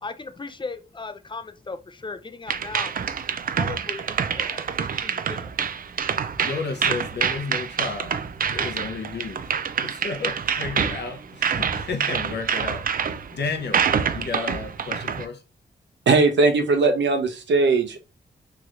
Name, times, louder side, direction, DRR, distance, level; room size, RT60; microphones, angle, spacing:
voice 1, 0.0-2.9 3.6-5.5, left 4 dB, 25° left, 0.5 m, -37 dB
sound 1, 2.5-15.3, right 7 dB, 50° right, 0.4 m, -26 dB
voice 2, 6.4-8.2 8.5-12.9 13.3-13.9 14.1-15.4, left 4 dB, 65° left, 0.7 m, -32 dB
voice 3, 16.1-18.0, right 3 dB, 75° right, 0.7 m, -19 dB
3.0 x 2.9 x 2.5 m
cardioid pair, 50°, 19 cm